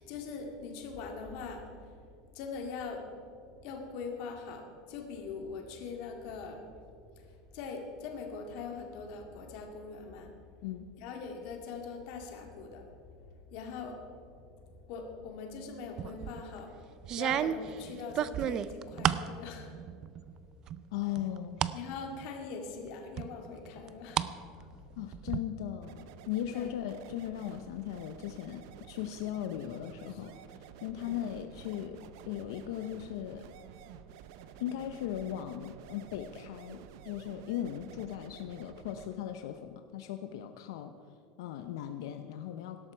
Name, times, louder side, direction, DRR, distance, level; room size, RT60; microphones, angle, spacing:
voice 1, 0.0-2.0 2.3-3.1 3.5-6.7 7.2-10.3 11.0-12.9 13.5-14.6 14.9-16.8 17.1-19.9 21.7-24.3 24.8-24.9 26.5-26.7 30.1-30.2 31.0-31.2, left 4 dB, 50° left, 2 dB, 2.2 m, -42 dB
sound 1, 16.0-16.4 17.0-19.3 19.7-20.3 20.7-21.8 22.2-22.3 23.2-24.3 24.6-25.4, right 10 dB, 25° right, 0.4 m, -32 dB
voice 2, 20.9-21.6 24.6-24.7 25.0-30.4 30.8-33.5 34.6-40.9 41.4-42.9, left 11 dB, 90° left, 8 dB, 0.7 m, -38 dB
sound 2, 25.8-39.2, right 9 dB, 65° right, 0.7 m, -51 dB
18.0 x 12.5 x 4.6 m, 2.4 s
cardioid pair, 180°, 2 cm